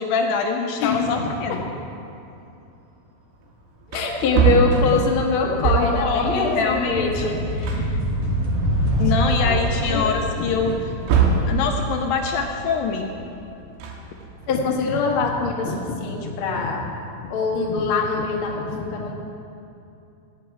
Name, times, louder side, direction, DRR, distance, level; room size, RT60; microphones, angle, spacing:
voice 1, 0.0-1.6 5.6-7.2 9.0-10.7 11.5-13.1, left 5 dB, 75° left, 3 dB, 2.3 m, -24 dB
voice 2, 0.8-1.6 3.9-8.0 9.4-9.6 9.9-10.2 10.6-10.7 14.5-16.9 17.2-19.1, left 4 dB, 55° left, -1 dB, 1.5 m, -24 dB
Wood, 3.4-3.5 3.8-6.1 7.2-7.3 7.6-8.8 9.3-9.4 10.7-11.6 13.6-14.5, right 6 dB, 90° right, 3.2 m, -23 dB
sound 1, 5.3-13.8, equal, 50° right, 2.1 m, -26 dB
17.5 x 9.1 x 4.7 m, 2.7 s
omnidirectional pair, 4.5 m